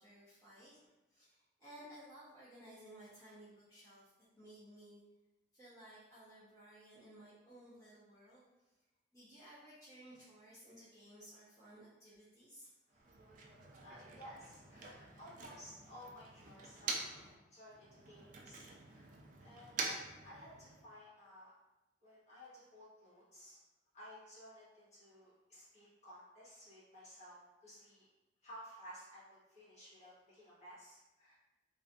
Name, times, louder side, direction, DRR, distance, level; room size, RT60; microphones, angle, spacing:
voice 1, 0.0-5.0 5.5-8.8 9.1-12.7, right 1 dB, 15° left, -13 dB, 0.7 m, -57 dB
Motor vehicle (road), 12.9-17.3 17.7-20.9, right 4 dB, 45° right, 0.3 m, -46 dB
voice 2, 13.8-19.1 19.4-21.5 22.0-23.6 23.9-28.1 28.4-31.3, equal, 40° left, -10 dB, 1.1 m, -56 dB
2.6 x 2.4 x 2.3 m, 1.0 s
head